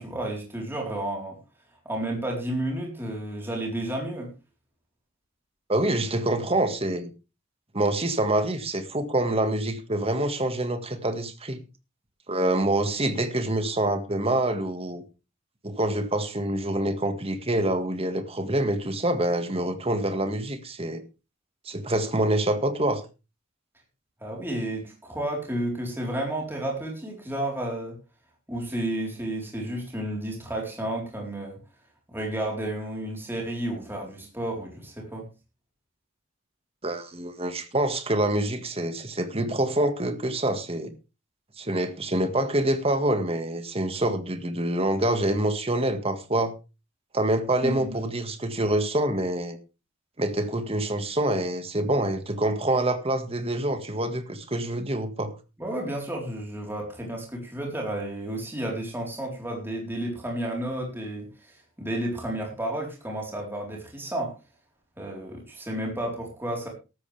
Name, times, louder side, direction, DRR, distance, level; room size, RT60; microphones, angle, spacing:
voice 1, 0.0-1.4 1.8-4.3 24.2-28.0 28.5-31.6 32.1-35.3 47.6-48.0 55.6-64.3 65.0-66.7, right 1 dB, 10° right, 4.1 m, -32 dB
voice 2, 5.7-7.1 7.7-11.6 12.3-15.0 15.6-21.0 21.7-23.0 36.8-40.9 41.6-46.5 47.1-49.6 50.2-55.3, right 1 dB, 30° right, 1.8 m, -26 dB
14.5 x 13.0 x 3.5 m
head